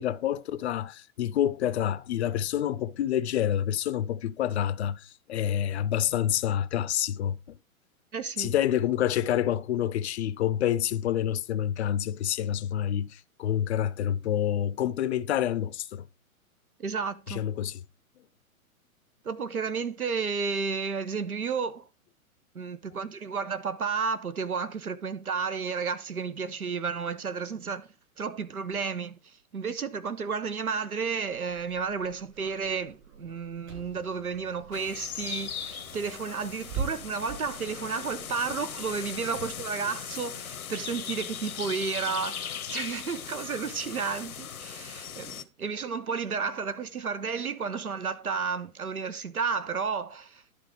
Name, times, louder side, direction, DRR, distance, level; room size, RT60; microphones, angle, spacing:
voice 1, 0.0-7.4 8.4-16.1 17.3-17.8, left 10 dB, 50° left, 0.6 m, -28 dB
voice 2, 8.1-8.5 16.8-17.4 19.2-21.8 22.5-27.9 28.2-29.2 29.5-50.4, right 5 dB, 85° right, 0.9 m, -32 dB
Car / Engine, 31.3-39.6, right 5 dB, 45° right, 3.7 m, -43 dB
sound 1, 34.7-45.4, left 8 dB, 75° left, 0.9 m, -39 dB
11.0 x 3.9 x 4.7 m
figure-of-eight pair, 115°, 43 cm